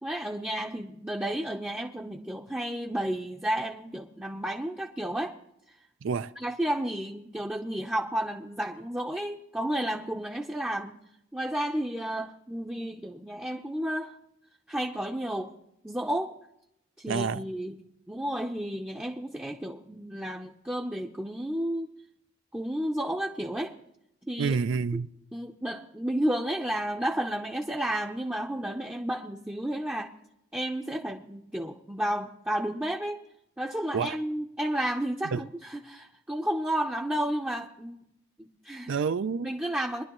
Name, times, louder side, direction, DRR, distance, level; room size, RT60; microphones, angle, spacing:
voice 1, 0.0-5.4 6.4-11.0 11.3-14.2 14.7-15.5 15.8-16.3 17.0-17.8 18.1-21.9 22.5-23.8 24.3-24.5 25.3-30.1 30.5-33.2 33.6-38.0 38.4-38.9 39.4-40.0, right 1 dB, 5° right, 0.6 m, -32 dB
voice 2, 6.0-6.3 17.1-17.5 24.4-25.1 33.9-34.2 35.2-35.5 38.9-39.5, right 5 dB, 65° right, 0.4 m, -28 dB
22.5 x 11.0 x 3.0 m
head